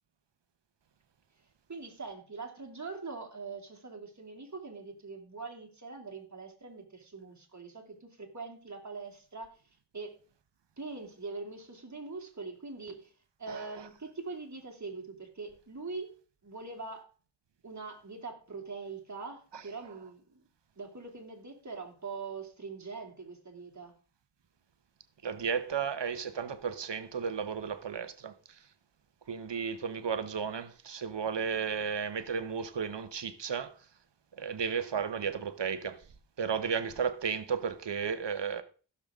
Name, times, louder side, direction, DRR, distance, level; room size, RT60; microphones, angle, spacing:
voice 1, 1.7-9.6 9.9-10.1 10.8-13.1 13.4-16.1 16.4-17.0 17.6-20.4 20.8-23.9, right 4 dB, 40° right, 2.8 m, -43 dB
voice 2, 25.2-28.6 29.3-33.8 34.3-36.0 36.4-38.6, right 6 dB, 80° right, 1.1 m, -34 dB
15.5 x 7.1 x 3.7 m
wide cardioid pair, 65°, 43 cm